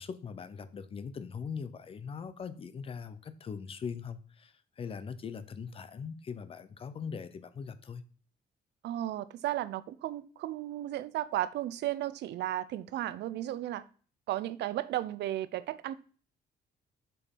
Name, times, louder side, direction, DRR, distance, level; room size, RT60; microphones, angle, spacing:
voice 1, 0.0-8.0, left 6 dB, 35° left, 0.6 m, -41 dB
voice 2, 8.8-13.8 14.3-15.9, right 13 dB, 90° right, 0.5 m, -34 dB
7.0 x 4.6 x 5.3 m
cardioid pair, 160°, 17 cm